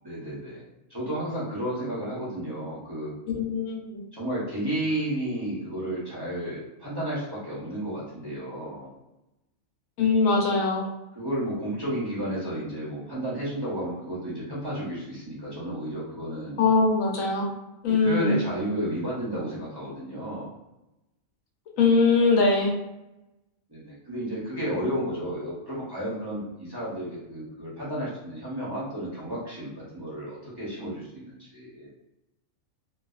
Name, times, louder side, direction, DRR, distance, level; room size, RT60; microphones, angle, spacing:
voice 1, 0.0-0.6 0.9-3.1 4.1-8.9 11.1-16.6 17.9-20.5 23.7-31.9, right 1 dB, 20° right, -8 dB, 0.8 m, -32 dB
voice 2, 3.3-4.0 10.0-10.8 16.6-17.5 17.8-18.4 21.8-22.7, left 4 dB, 85° left, 0 dB, 1.1 m, -22 dB
2.6 x 2.3 x 2.3 m, 0.94 s
omnidirectional pair, 1.4 m